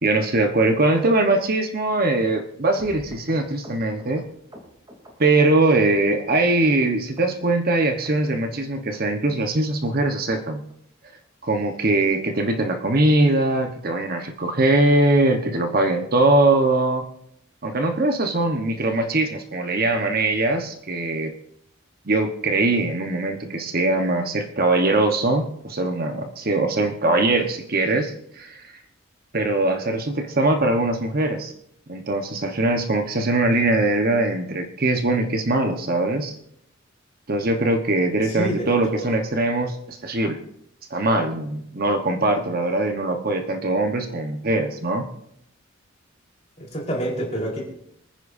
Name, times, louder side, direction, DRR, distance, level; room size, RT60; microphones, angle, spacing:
voice 1, 0.0-4.2 5.2-10.6 11.4-17.1 17.6-21.3 22.0-28.7 29.3-31.5 31.9-36.4 37.3-40.4 40.9-45.1, right 2 dB, 45° right, 5 dB, 1.2 m, -21 dB
sound 1, 2.7-6.0 6.3-6.9 7.2-7.7 8.0-8.1 8.4-8.6 8.9-9.0 9.3-9.5 9.8-9.9 10.2-10.4 10.7-10.8 11.0-11.2 11.6-11.7 11.9-12.1 12.5-12.6, equal, 25° right, 3.0 m, -46 dB
voice 2, 38.2-39.2 46.6-47.6, equal, 35° left, -2 dB, 4.2 m, -28 dB
25.5 x 9.9 x 2.7 m, 0.72 s
head